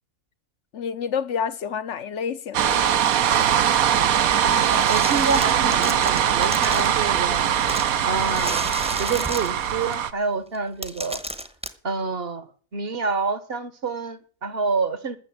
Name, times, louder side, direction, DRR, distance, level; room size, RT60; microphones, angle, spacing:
voice 1, 0.7-2.8, left 7 dB, 55° left, 1.1 m, -29 dB
sound 1, 2.5-10.1, right 9 dB, 70° right, 1.2 m, -21 dB
voice 2, 4.4-7.5 8.0-8.6 9.0-11.2 11.8-12.4 12.7-15.2, right 4 dB, 45° right, 1.2 m, -27 dB
sound 2, 4.5-7.0 7.7-9.9 10.5-10.6 10.8-11.7, right 1 dB, 5° right, 0.9 m, -33 dB
13.5 x 7.0 x 8.6 m
omnidirectional pair, 1.6 m